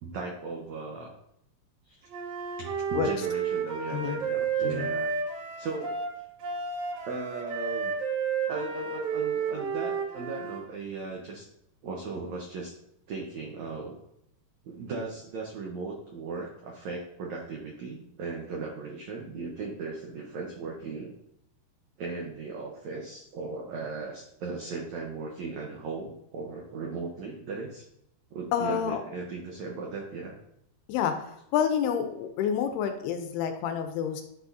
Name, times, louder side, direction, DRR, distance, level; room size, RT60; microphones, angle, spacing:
voice 1, 0.0-1.1 1.8-2.0 2.6-5.1 5.6-6.0 7.0-7.9 8.5-11.4 11.8-12.7 13.1-14.0 14.6-21.1 22.0-27.9 28.3-30.3, right 4 dB, 85° right, -1 dB, 1.6 m, -37 dB
Wind instrument woodwind instrument, 2.1-10.6, right 6 dB, 65° right, 1.9 m, -31 dB
voice 2, 28.5-29.0 30.9-31.2 31.5-34.2, left 8 dB, 80° left, 7 dB, 2.7 m, -28 dB
11.0 x 6.0 x 2.8 m, 0.78 s
omnidirectional pair, 4.8 m